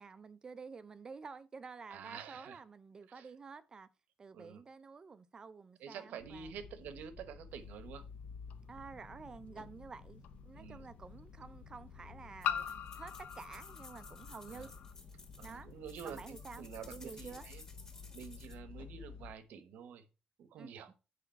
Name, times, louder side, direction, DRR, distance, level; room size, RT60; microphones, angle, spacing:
voice 1, 0.0-3.9 4.2-6.5 8.7-14.7 15.4-15.7 16.0-16.6 16.9-17.5 20.6-20.8, right 5 dB, 25° right, 0.5 m, -50 dB
voice 2, 1.9-2.6 3.1-3.3 4.3-4.6 5.8-8.0 10.6-10.8 14.5-14.7 15.4-17.6 18.1-20.0 20.4-20.9, right 7 dB, 80° right, 1.0 m, -48 dB
sound 1, 6.2-19.3, left 5 dB, 50° left, 0.8 m, -53 dB
sound 2, 8.5-8.6 10.2-10.3 12.4-14.9, left 9 dB, 85° left, 0.6 m, -40 dB
sound 3, 12.4-18.5, left 3 dB, 25° left, 1.7 m, -56 dB
7.9 x 5.1 x 4.4 m
cardioid pair, 165°, 3 cm